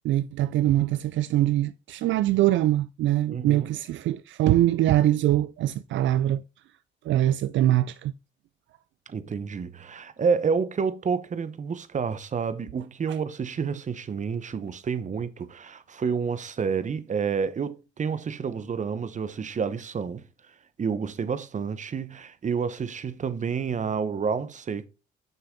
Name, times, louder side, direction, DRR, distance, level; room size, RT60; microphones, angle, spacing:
voice 1, 0.0-6.4 7.1-8.1, right 13 dB, 70° right, 0.4 m, -23 dB
voice 2, 3.3-3.7 9.1-20.2 20.8-24.9, right 6 dB, 40° right, 0.9 m, -29 dB
6.8 x 5.8 x 3.7 m
cardioid pair, 90°, 20 cm